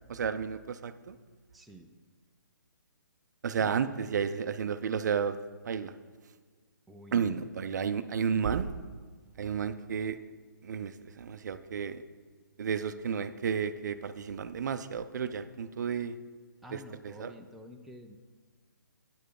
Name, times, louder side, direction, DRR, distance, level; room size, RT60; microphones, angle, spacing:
voice 1, 0.1-1.2 3.4-5.4 5.7-5.9 7.1-8.7 9.4-10.2 10.6-10.9 11.2-12.0 12.6-16.1 16.7-16.8 17.0-17.3, right 7 dB, 55° right, 11 dB, 0.6 m, -32 dB
voice 2, 1.5-1.9 3.6-3.7 6.9-7.3 16.6-18.2, equal, ahead, 1 dB, 0.5 m, -49 dB
9.6 x 6.8 x 4.8 m, 1.5 s
hypercardioid pair, 140°, 11 cm